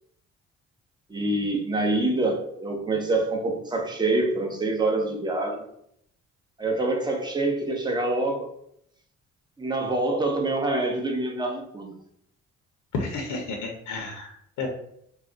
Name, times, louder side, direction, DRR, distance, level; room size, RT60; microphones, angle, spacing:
voice 1, 1.1-5.7 6.6-8.5 9.6-11.9, right 2 dB, 15° right, 2 dB, 0.6 m, -26 dB
voice 2, 12.9-14.7, left 3 dB, 80° left, 2 dB, 0.6 m, -32 dB
2.3 x 2.2 x 3.7 m, 0.71 s
cardioid pair, 90°, 30 cm